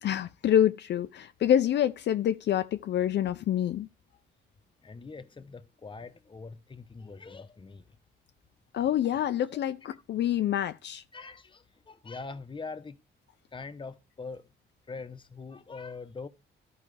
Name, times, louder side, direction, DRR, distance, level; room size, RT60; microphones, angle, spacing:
voice 1, 0.0-3.9 8.7-11.0, left 10 dB, 60° left, 0.5 m, -27 dB
voice 2, 4.8-8.0 9.5-9.6 11.1-13.0 13.5-14.5 14.9-16.3, left 4 dB, 25° left, 0.9 m, -43 dB
13.5 x 4.8 x 3.2 m
cardioid pair, 90°, 20 cm